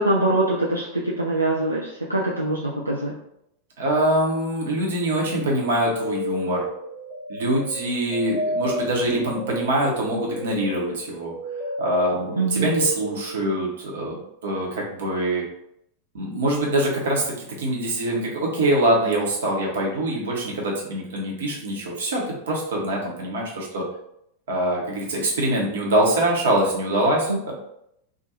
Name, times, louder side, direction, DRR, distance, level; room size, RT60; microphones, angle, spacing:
voice 1, 0.0-3.1 12.4-12.7 27.3-27.4, right 2 dB, 85° right, -4 dB, 0.3 m, -23 dB
voice 2, 3.8-6.7 7.3-11.3 11.8-15.4 16.1-23.8 24.5-27.5, right 1 dB, 60° right, -2 dB, 0.8 m, -24 dB
sound 1, 5.2-13.5, left 1 dB, ahead, 1.0 m, -31 dB
2.4 x 2.2 x 2.9 m, 0.76 s
figure-of-eight pair, 90°, 0 cm